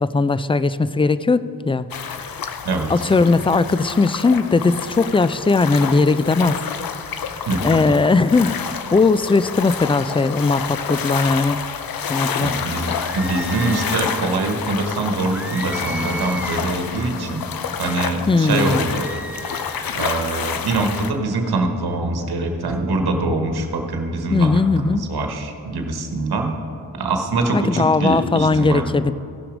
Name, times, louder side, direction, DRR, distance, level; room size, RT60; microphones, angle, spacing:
voice 1, 0.0-1.9 2.1-2.3 2.9-6.6 7.6-8.6 8.9-11.6 12.1-12.5 18.3-19.0 24.3-25.1 27.5-29.1, left 3 dB, 15° left, 15 dB, 0.3 m, -18 dB
sound 1, 1.9-21.1, left 7 dB, 65° left, 0.7 m, -29 dB
voice 2, 7.5-7.8 12.4-17.5 17.8-19.1 19.9-26.5 26.9-28.8, right 2 dB, 75° right, 4 dB, 1.2 m, -23 dB
sound 2, 12.9-14.1 15.3-16.7 18.7-19.9, right 1 dB, 5° right, 0.7 m, -34 dB
15.0 x 5.9 x 5.0 m, 2.6 s
cardioid pair, 45°, 38 cm